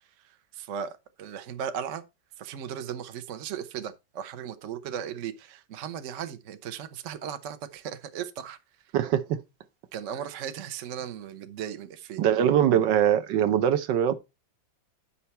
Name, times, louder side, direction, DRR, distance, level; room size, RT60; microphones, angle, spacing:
voice 1, 0.2-2.0 2.4-8.6 9.9-12.2, right 8 dB, 55° right, 0.9 m, -37 dB
voice 2, 8.9-9.4 12.2-14.1, right 10 dB, 70° right, 1.4 m, -22 dB
9.9 x 5.8 x 4.2 m
omnidirectional pair, 2.1 m